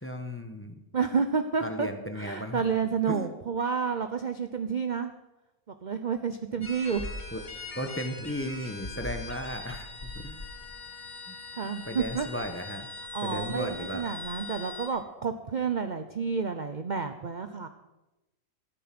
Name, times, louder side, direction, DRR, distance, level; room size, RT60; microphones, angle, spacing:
voice 1, 0.0-0.8 1.6-2.6 3.1-3.4 7.3-7.4 7.7-10.5 11.3-11.4 11.9-12.9 13.2-14.0, equal, 10° left, 6 dB, 1.1 m, -35 dB
voice 2, 0.9-1.9 2.2-5.1 5.8-7.0 11.6-12.3 13.1-17.7, right 6 dB, 40° right, 7 dB, 0.7 m, -30 dB
sound 1, 6.6-14.9, left 3 dB, 30° left, 1.5 m, -41 dB
14.0 x 13.0 x 6.1 m, 1.0 s
omnidirectional pair, 1.5 m